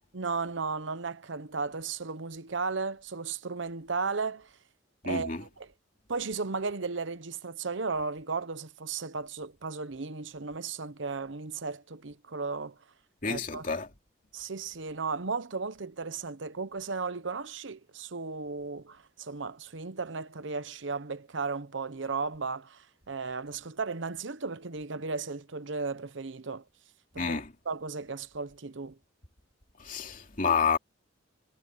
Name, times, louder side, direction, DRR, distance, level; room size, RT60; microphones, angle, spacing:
voice 1, 0.1-4.5 5.0-5.7 6.1-12.7 13.2-13.7 14.3-26.6 27.1-29.0, right 4 dB, 70° right, 0.9 m, -35 dB
voice 2, 5.0-5.4 13.2-13.9 27.2-27.5 29.8-30.8, left 5 dB, 40° left, 2.9 m, -29 dB
head